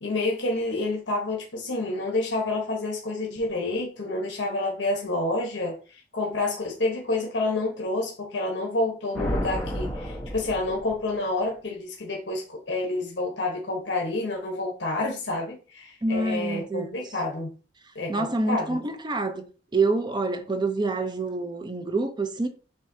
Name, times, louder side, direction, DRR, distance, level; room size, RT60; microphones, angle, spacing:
voice 1, 0.0-5.8 6.1-17.5 17.9-18.8, left 2 dB, 70° left, 1.1 m, -29 dB
sound 1, 9.1-11.3, equal, 10° left, 1.0 m, -31 dB
voice 2, 16.0-17.0 18.1-19.5 19.7-22.5, right 3 dB, 25° right, 0.6 m, -27 dB
7.1 x 2.7 x 2.7 m
head